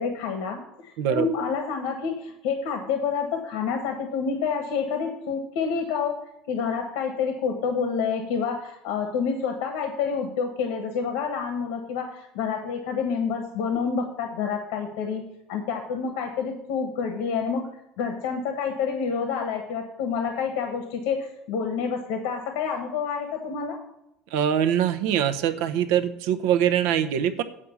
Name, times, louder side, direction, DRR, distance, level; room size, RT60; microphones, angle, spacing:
voice 1, 0.0-6.2 6.5-15.2 15.5-17.7 18.0-23.8, left 6 dB, 85° left, 5 dB, 1.2 m, -28 dB
voice 2, 24.3-27.4, right 10 dB, 80° right, 9 dB, 0.8 m, -23 dB
8.5 x 5.0 x 6.9 m, 0.83 s
cardioid pair, 145°, 0 cm